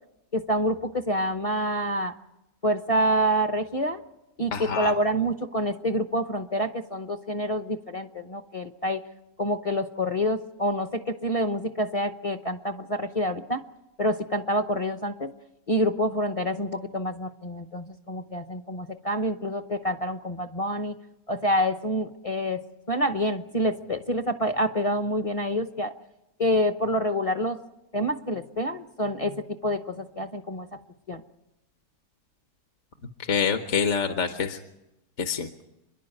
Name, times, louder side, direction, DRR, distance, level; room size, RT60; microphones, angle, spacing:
voice 1, 0.3-2.1 2.6-4.0 4.4-9.0 9.4-13.6 14.0-15.3 15.7-20.9 21.3-25.9 26.4-27.6 27.9-30.7 31.1-31.2, equal, 30° left, 7 dB, 0.7 m, -27 dB
voice 2, 4.5-4.9 33.3-34.6 35.2-35.5, left 6 dB, 55° left, 7 dB, 1.3 m, -26 dB
28.5 x 11.0 x 9.0 m, 0.94 s
omnidirectional pair, 1.6 m